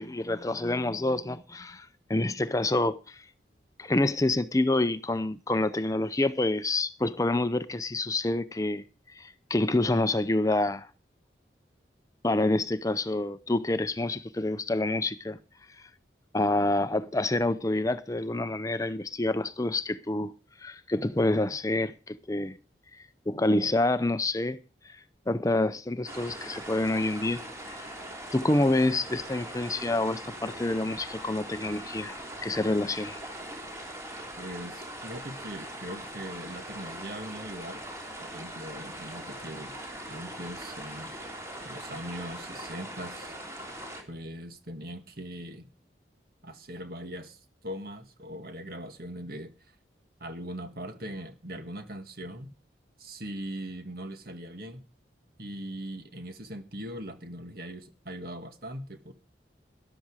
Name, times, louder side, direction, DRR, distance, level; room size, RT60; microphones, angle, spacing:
voice 1, 0.0-3.2 3.8-8.8 9.2-10.9 12.2-15.4 16.3-20.3 20.6-22.6 23.3-24.6 24.8-25.0 25.3-27.8 28.3-33.2, left 2 dB, 20° left, 0.6 m, -27 dB
sound 1, 26.0-44.0, right 1 dB, 15° right, 3.2 m, -41 dB
voice 2, 34.4-37.8 38.2-39.8 40.1-41.1 41.6-43.4 44.1-45.7 46.4-49.5 50.2-52.5 53.0-54.8 55.4-59.1, right 1 dB, 55° right, 1.9 m, -40 dB
13.0 x 12.0 x 4.8 m
head